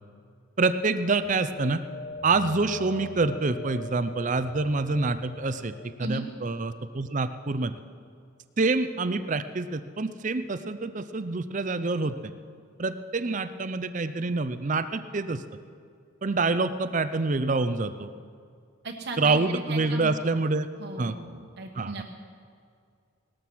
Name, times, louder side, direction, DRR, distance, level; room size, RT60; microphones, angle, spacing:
voice 1, 0.6-1.8 2.2-5.7 6.0-7.7 8.6-12.3 12.8-15.4 16.2-18.1 19.2-20.7 21.0-21.2 21.8-22.0, right 3 dB, 35° right, 11 dB, 0.5 m, -26 dB
sound 1, 1.2-6.2, left 3 dB, 45° left, 0.4 m, -42 dB
voice 2, 18.8-20.1 20.8-22.0, right 2 dB, 50° right, 1 dB, 1.2 m, -36 dB
18.5 x 13.0 x 6.2 m, 2.2 s
head